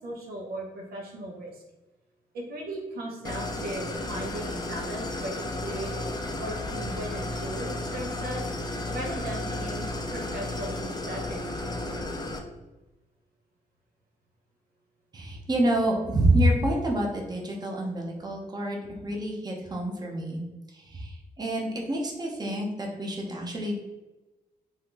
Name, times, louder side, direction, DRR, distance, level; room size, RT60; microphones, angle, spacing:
voice 1, 0.0-1.6 2.3-6.1 6.4-8.4 8.9-12.1, right 1 dB, 70° right, -1 dB, 0.8 m, -37 dB
Idling, 3.2-12.4, left 2 dB, 25° left, 0.5 m, -33 dB
voice 2, 15.1-20.4 20.7-23.8, right 1 dB, 25° right, -1 dB, 0.8 m, -27 dB
2.7 x 2.4 x 3.8 m, 1.1 s
cardioid pair, 70°, 17 cm